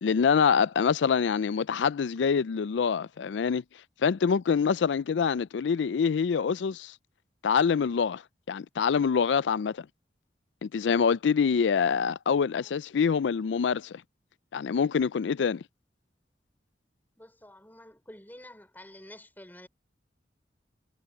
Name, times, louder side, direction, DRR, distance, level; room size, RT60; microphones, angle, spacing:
voice 1, 0.0-3.6 4.0-6.9 7.4-8.2 8.5-9.9 10.6-14.0 14.5-15.6, left 6 dB, 85° left, 0.4 m, -25 dB
voice 2, 17.2-19.7, left 1 dB, 10° left, 4.6 m, -49 dB
head